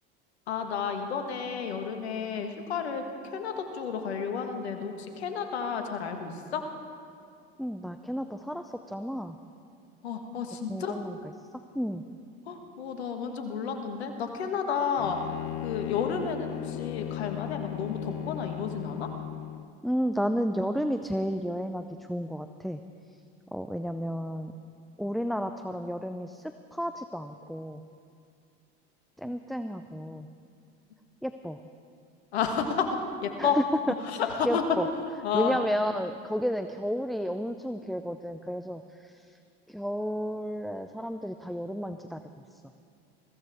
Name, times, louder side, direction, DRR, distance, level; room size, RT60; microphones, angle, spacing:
voice 1, 0.5-6.6 10.0-11.0 12.5-15.2 15.6-19.1 29.2-29.3 32.3-33.6 34.1-34.6 35.2-35.6, left 6 dB, 90° left, 5 dB, 1.4 m, -31 dB
voice 2, 7.6-9.4 10.7-11.2 11.7-12.0 19.8-22.8 23.5-24.5 25.0-27.8 29.2-30.3 31.2-31.6 33.4-33.6 34.4-34.9 35.3-39.4 39.7-42.2 42.5-42.6, equal, ahead, 8 dB, 0.4 m, -32 dB
Bowed string instrument, 15.0-19.7, left 13 dB, 50° left, 0.5 m, -37 dB
21.5 x 15.5 x 3.5 m, 2.4 s
hypercardioid pair, 80°, 31 cm